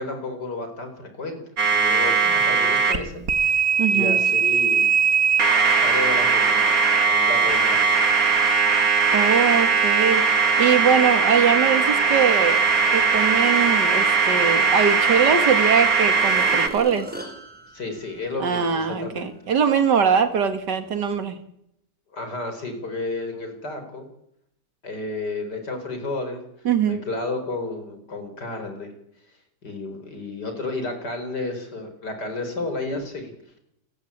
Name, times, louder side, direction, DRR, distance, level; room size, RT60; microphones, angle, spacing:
voice 1, 0.0-1.4 1.7-3.6 3.9-4.9 5.8-6.8 7.0-8.0 17.7-19.3 22.1-24.1 24.8-26.4 26.8-28.9 29.6-33.3, left 2 dB, 75° left, 6 dB, 5.0 m, -32 dB
sound 1, 1.6-3.0 3.3-16.7, right 5 dB, 55° right, 2.4 m, -19 dB
voice 2, 3.8-4.2 9.1-10.2 10.6-12.6 12.9-17.1 18.4-21.4 26.7-27.1, right 7 dB, 80° right, 9 dB, 2.5 m, -22 dB
sound 2, 16.0-18.8 19.3-19.4, right 1 dB, 5° right, 4.5 m, -39 dB
29.5 x 16.0 x 8.8 m, 0.78 s
omnidirectional pair, 1.8 m